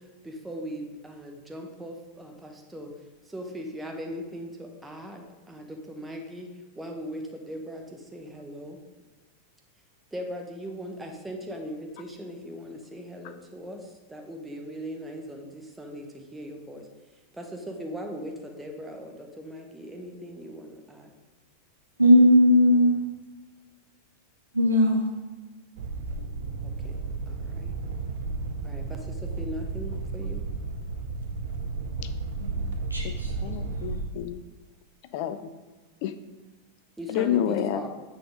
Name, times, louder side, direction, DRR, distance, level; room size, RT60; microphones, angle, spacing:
voice 1, 0.4-2.9 3.3-4.5 4.8-5.2 5.5-6.5 6.8-7.2 7.5-7.8 8.1-8.8 10.1-13.8 14.1-15.4 15.8-16.0 16.3-16.8 17.4-18.3 18.6-19.1 19.4-21.0 26.8-26.9 27.6-27.7 28.6-28.8 29.4-30.4 37.0-37.9, equal, 5° right, 2 dB, 1.1 m, -38 dB
voice 2, 22.0-23.0 24.5-25.0 32.4-32.5 32.9-33.3, equal, 85° right, -2 dB, 1.6 m, -18 dB
sound 1, 25.8-34.0, right 3 dB, 55° right, 0.8 m, -33 dB
voice 3, 33.0-34.4 35.1-35.5 36.0-36.1 37.1-37.9, left 10 dB, 50° left, 11 dB, 0.5 m, -29 dB
8.9 x 4.1 x 5.0 m, 1.2 s
figure-of-eight pair, 90°, 0 cm